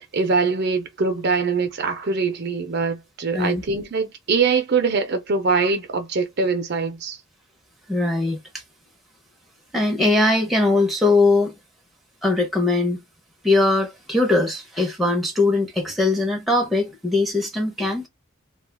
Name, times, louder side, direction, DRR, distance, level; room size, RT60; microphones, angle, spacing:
voice 1, 0.1-7.2, right 4 dB, 50° right, 0.5 m, -23 dB
voice 2, 7.9-8.4 9.7-11.5 12.2-13.0 13.4-18.1, left 2 dB, ahead, 0.6 m, -20 dB
2.3 x 2.3 x 3.3 m
head